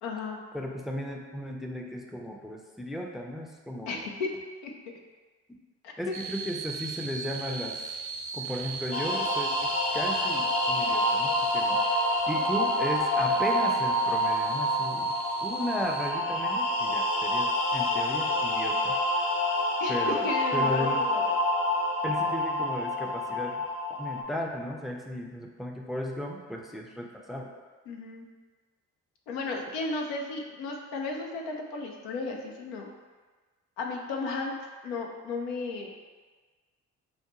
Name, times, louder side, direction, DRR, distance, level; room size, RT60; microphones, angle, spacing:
voice 1, 0.0-0.4 3.9-4.3 4.6-4.7 5.8-6.2 12.3-12.4 19.8-21.3 27.9-28.3 29.3-32.9 33.8-34.6 34.8-35.9, left 3 dB, 85° left, 1 dB, 0.6 m, -34 dB
voice 2, 0.5-4.0 6.0-7.9 8.3-19.3 19.9-20.3 20.5-21.1 22.0-23.7 24.0-27.5, equal, ahead, 1 dB, 0.4 m, -35 dB
sound 1, 6.1-16.1, right 4 dB, 70° right, 0.9 m, -39 dB
sound 2, 8.9-24.2, left 1 dB, 35° left, 0.6 m, -27 dB
4.7 x 2.1 x 2.9 m, 1.4 s
hypercardioid pair, 50°, 37 cm